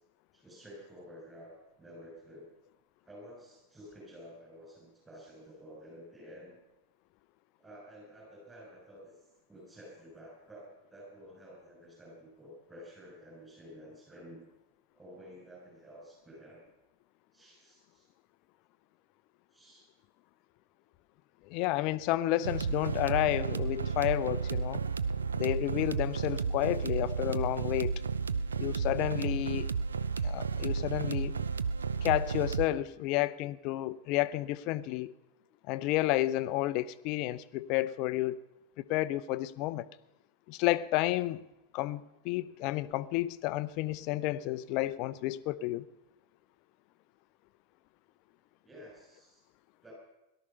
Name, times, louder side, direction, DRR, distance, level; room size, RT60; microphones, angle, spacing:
voice 1, 0.3-2.5 3.0-6.6 7.6-9.2 9.5-14.5 14.9-16.6 17.3-18.1 19.5-19.8 48.6-49.4 49.8-49.9, equal, 15° right, 6.2 m, -51 dB
voice 2, 21.5-24.8 25.3-27.9 28.6-29.7 30.2-31.3 32.0-35.1 35.7-38.4 38.8-39.9 40.5-41.4 41.7-45.8, left 16 dB, 40° left, 0.6 m, -31 dB
sound 1, 22.4-32.7, right 5 dB, 70° right, 0.6 m, -32 dB
18.0 x 12.5 x 5.6 m
figure-of-eight pair, 90°, 0 cm